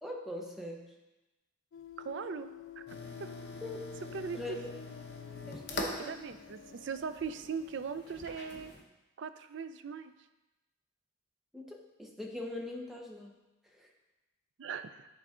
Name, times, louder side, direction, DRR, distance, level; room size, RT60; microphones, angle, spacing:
voice 1, 0.0-0.9 3.6-3.8 4.3-4.7 5.5-6.2 11.5-13.4 13.7-13.9, left 1 dB, ahead, 0 dB, 0.6 m, -42 dB
sound 1, 1.7-7.9, left 7 dB, 75° left, 0.3 m, -51 dB
voice 2, 2.0-2.5 2.8-2.9 3.2-3.3 4.1-4.6 6.0-8.7 9.2-10.1 14.6-15.1, right 6 dB, 60° right, 11 dB, 0.4 m, -39 dB
sound 2, 2.9-8.8, left 3 dB, 50° left, 0.8 m, -44 dB
10.5 x 3.9 x 3.7 m, 1.0 s
head